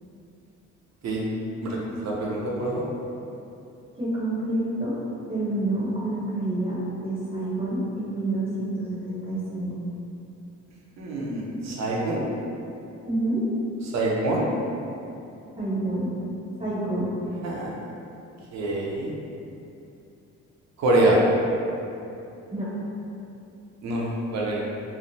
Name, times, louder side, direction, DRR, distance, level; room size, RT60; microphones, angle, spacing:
voice 1, 1.6-2.8 11.0-12.2 13.8-14.5 17.4-17.7 18.5-19.1 20.8-21.2 23.8-24.6, right 2 dB, 60° right, -4 dB, 0.6 m, -25 dB
voice 2, 3.9-5.0 5.3-9.7 13.1-13.5 15.6-16.1 16.6-17.1 22.5-22.7, right 1 dB, 20° right, -8 dB, 0.7 m, -28 dB
3.1 x 2.0 x 2.6 m, 2.7 s
cardioid pair, 90°, 30 cm